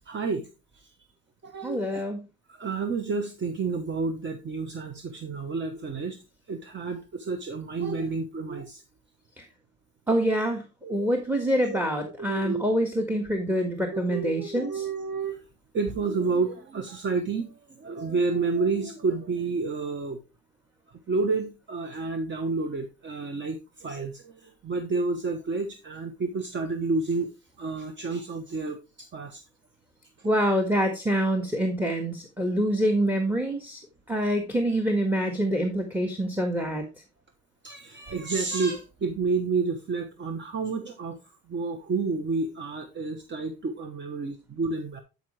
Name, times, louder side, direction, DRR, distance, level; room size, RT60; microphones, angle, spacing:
voice 1, 0.1-0.4 0.7-0.9 1.4-2.0 2.5-6.2 6.5-8.8 10.8-11.2 11.4-12.6 13.9-15.4 15.7-20.2 21.1-27.3 27.6-29.4 30.2-30.3 37.6-41.2 41.5-45.0, right 4 dB, 40° right, 7 dB, 1.2 m, -30 dB
voice 2, 1.6-2.2 10.1-10.6 10.9-14.8 30.2-33.8 34.1-36.8, equal, 5° right, 5 dB, 1.6 m, -26 dB
11.5 x 5.3 x 3.2 m, 0.28 s
cardioid pair, 100°, 29 cm